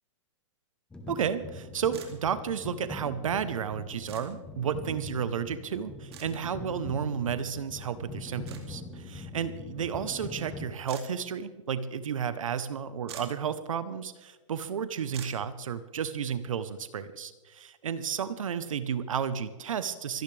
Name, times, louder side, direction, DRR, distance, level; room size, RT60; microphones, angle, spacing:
sound 1, 0.9-10.7, left 2 dB, 5° left, 1.1 m, -43 dB
voice 1, 1.1-20.2, right 7 dB, 85° right, 13 dB, 0.9 m, -32 dB
sound 2, 1.9-2.1 4.1-4.2 6.1-6.3 8.5-8.6 10.9-11.1 12.7-12.8 13.0-13.4 15.1-15.4, right 7 dB, 50° right, 2.4 m, -44 dB
26.5 x 10.5 x 3.4 m, 1.2 s
hypercardioid pair, 160°, 17 cm